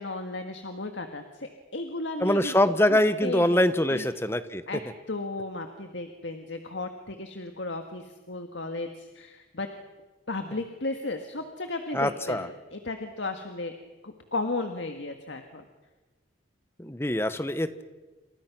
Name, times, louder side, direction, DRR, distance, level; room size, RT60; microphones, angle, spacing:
voice 1, 0.0-4.0 4.7-4.8 5.1-9.7 10.3-13.7 14.0-15.6, left 2 dB, 75° left, 5 dB, 1.8 m, -35 dB
voice 2, 2.2-4.6 11.9-12.5 16.8-17.8, left 1 dB, 15° left, 11 dB, 1.1 m, -24 dB
28.5 x 26.5 x 6.1 m, 1.3 s
head